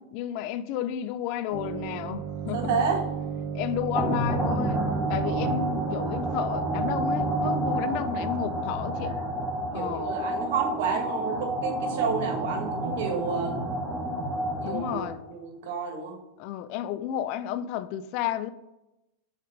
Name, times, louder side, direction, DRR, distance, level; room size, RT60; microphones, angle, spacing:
voice 1, 0.1-2.8 3.5-9.2 9.7-10.1 14.6-15.2 16.4-18.5, left 11 dB, 50° left, 0.4 m, -32 dB
sound 1, 1.5-7.8, right 6 dB, 30° right, 1.8 m, -32 dB
voice 2, 2.5-3.0 9.0-9.3 9.7-13.6 14.6-16.2, right 5 dB, 60° right, 1.6 m, -30 dB
sound 2, 4.0-15.3, right 1 dB, ahead, 1.4 m, -30 dB
5.6 x 5.0 x 5.0 m
figure-of-eight pair, 90°, 0 cm